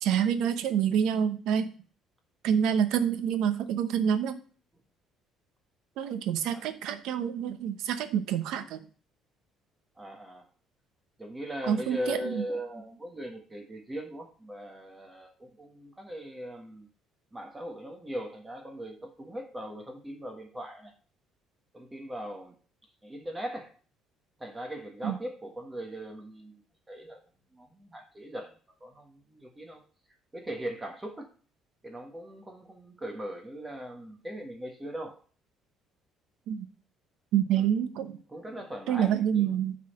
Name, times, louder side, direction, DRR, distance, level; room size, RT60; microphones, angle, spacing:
voice 1, 0.0-1.7 2.4-4.4 6.0-8.8 11.7-12.4 25.0-25.2 36.5-36.7 37.3-38.2 38.9-39.8, right 8 dB, 70° right, 10 dB, 1.0 m, -27 dB
voice 2, 10.0-10.5 11.2-16.9 17.3-20.9 21.7-22.6 23.0-23.7 24.4-26.6 26.9-27.2 27.5-29.8 30.3-31.3 31.8-35.2 37.6-37.7 38.3-39.5, equal, 10° right, 4 dB, 1.4 m, -39 dB
8.4 x 4.1 x 6.5 m, 0.40 s
cardioid pair, 165°, 0 cm